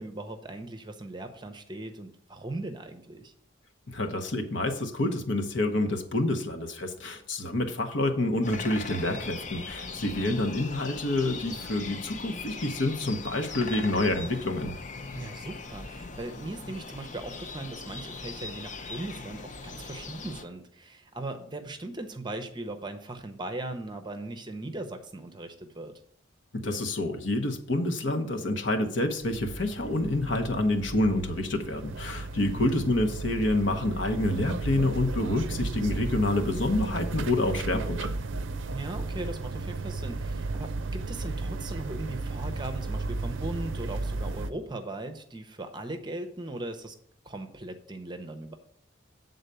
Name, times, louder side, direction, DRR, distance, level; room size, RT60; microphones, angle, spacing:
voice 1, 0.0-3.3 10.0-10.4 15.1-25.9 32.5-32.8 38.7-47.0 47.2-48.6, right 2 dB, 25° right, 7 dB, 0.7 m, -38 dB
voice 2, 3.9-14.7 26.5-38.1, left 2 dB, 70° left, 5 dB, 1.0 m, -28 dB
sound 1, 8.4-20.4, left 4 dB, 40° left, 0.6 m, -40 dB
sound 2, 29.1-44.5, right 3 dB, 70° right, 0.5 m, -34 dB
8.0 x 4.0 x 6.7 m, 0.63 s
head